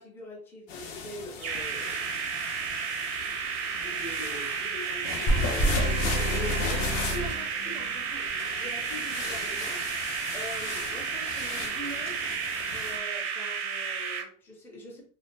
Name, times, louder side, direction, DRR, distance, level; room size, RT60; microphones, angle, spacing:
voice 1, 0.0-2.2 3.8-9.8 10.3-12.3 12.7-15.1, left 1 dB, 5° left, 0.4 m, -42 dB
sound 1, 0.7-13.0, left 6 dB, 85° left, 0.6 m, -39 dB
sound 2, 1.4-14.2, right 6 dB, 80° right, 0.6 m, -32 dB
sound 3, 5.3-8.1, right 1 dB, 45° left, 0.7 m, -28 dB
2.3 x 2.2 x 2.5 m
supercardioid pair, 155°, 31 cm